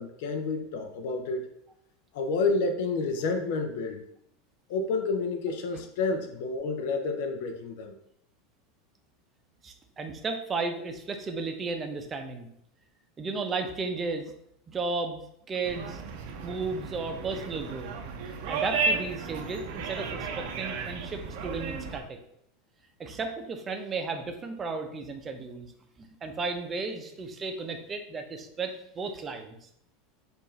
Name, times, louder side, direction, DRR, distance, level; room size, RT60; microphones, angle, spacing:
voice 1, 0.0-1.5 2.1-4.1 4.7-7.9, left 3 dB, 70° left, 6 dB, 0.5 m, -29 dB
voice 2, 9.6-12.5 13.2-14.3 14.7-15.2 15.5-16.0 16.4-17.9 18.2-22.2 23.0-25.7 26.0-29.7, right 4 dB, 25° right, 6 dB, 0.6 m, -34 dB
sound 1, 15.6-22.0, right 4 dB, 65° right, 0.6 m, -34 dB
4.5 x 2.5 x 3.1 m, 0.73 s
supercardioid pair, 120°, 0 cm